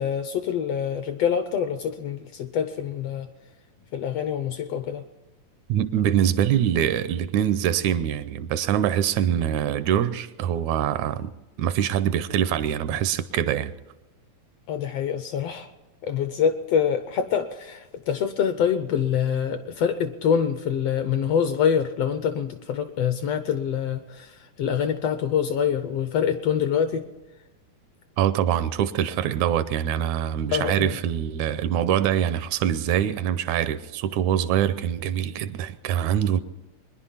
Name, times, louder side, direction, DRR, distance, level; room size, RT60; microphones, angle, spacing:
voice 1, 0.0-3.3 3.9-5.0 14.7-15.7 16.0-27.1 30.5-30.9, left 8 dB, 75° left, 1.5 m, -25 dB
voice 2, 5.7-11.3 11.6-13.7 28.2-36.4, right 10 dB, 80° right, 2.0 m, -24 dB
22.5 x 10.5 x 5.7 m
omnidirectional pair, 3.4 m